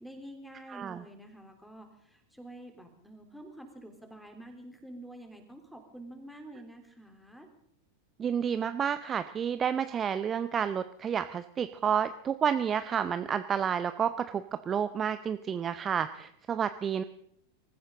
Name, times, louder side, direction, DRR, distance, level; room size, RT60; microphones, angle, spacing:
voice 1, 0.0-7.5, right 1 dB, ahead, 4 dB, 3.5 m, -48 dB
voice 2, 8.2-17.0, right 8 dB, 25° right, 11 dB, 0.7 m, -30 dB
24.5 x 15.0 x 3.8 m, 0.72 s
figure-of-eight pair, 90°, 0 cm